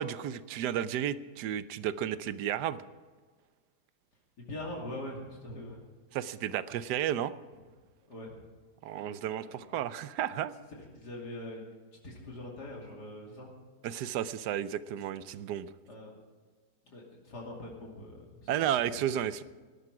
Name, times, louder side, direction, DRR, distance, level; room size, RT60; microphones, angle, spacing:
voice 1, 0.0-2.8 6.1-7.3 8.8-10.5 13.8-15.7 18.5-19.4, right 10 dB, 75° right, 14 dB, 1.2 m, -32 dB
voice 2, 4.4-5.8 8.1-8.4 8.9-9.6 10.8-11.7 12.0-13.5 15.8-16.2 16.8-18.7, left 1 dB, 65° left, -2 dB, 3.3 m, -43 dB
18.0 x 12.0 x 4.9 m, 1.4 s
omnidirectional pair, 1.9 m